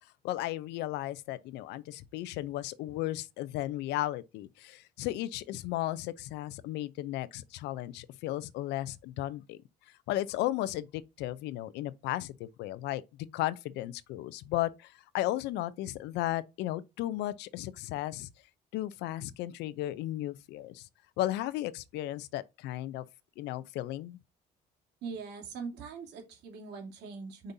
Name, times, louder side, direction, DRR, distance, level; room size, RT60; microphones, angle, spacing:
voice 1, 0.2-9.6 10.1-13.0 13.3-18.3 18.7-20.9 21.2-23.0 23.4-24.2, left 15 dB, 85° left, 0.6 m, -35 dB
voice 2, 25.0-27.5, right 5 dB, 85° right, 2.9 m, -41 dB
8.1 x 5.2 x 2.7 m
cardioid pair, 110°, 17 cm